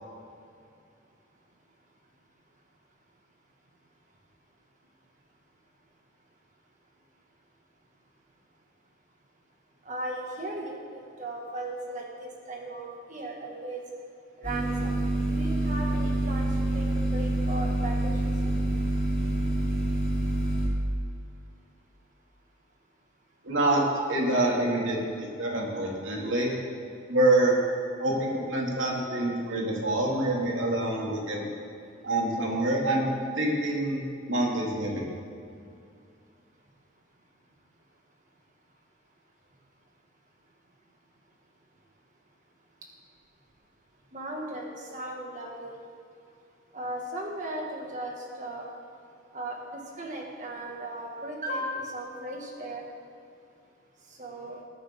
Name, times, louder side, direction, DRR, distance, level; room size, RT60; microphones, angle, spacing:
voice 1, 9.9-13.8 14.4-14.9 15.3-16.9 17.1-18.5 44.1-45.7 46.7-48.7 49.3-52.8 54.2-54.6, right 1 dB, 40° right, -1 dB, 2.0 m, -37 dB
sound 1, 14.4-20.7, right 1 dB, 10° left, 3.8 m, -27 dB
voice 2, 23.4-26.5 27.1-27.6 28.0-31.5 32.0-34.0 34.3-35.0, right 1 dB, 75° right, -2 dB, 2.6 m, -26 dB
21.0 x 9.3 x 3.8 m, 2.4 s
head